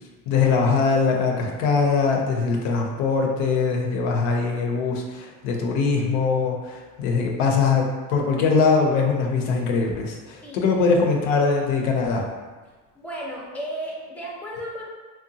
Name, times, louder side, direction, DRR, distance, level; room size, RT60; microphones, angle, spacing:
voice 1, 0.3-12.2, left 4 dB, 85° left, 1 dB, 0.6 m, -22 dB
voice 2, 12.9-14.9, right 1 dB, 5° left, -4 dB, 0.6 m, -34 dB
2.7 x 2.2 x 2.7 m, 1.3 s
supercardioid pair, 100°, 38 cm